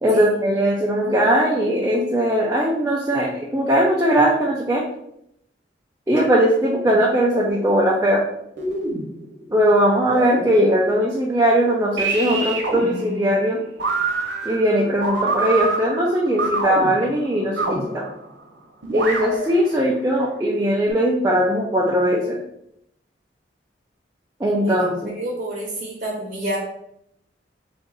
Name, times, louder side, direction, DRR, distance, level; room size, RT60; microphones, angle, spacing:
voice 1, 0.0-4.8 6.1-8.2 9.5-13.6 14.4-18.0 18.9-22.4 24.4-25.1, equal, 15° right, -4 dB, 0.5 m, -19 dB
sound 1, 7.5-8.2 8.6-9.5 10.0-10.8 12.0-18.4 18.8-19.9 20.9-21.0, right 3 dB, 90° right, 0.9 m, -26 dB
voice 2, 25.1-26.6, right 1 dB, 55° right, -4 dB, 0.9 m, -28 dB
3.8 x 2.5 x 3.8 m, 0.76 s
head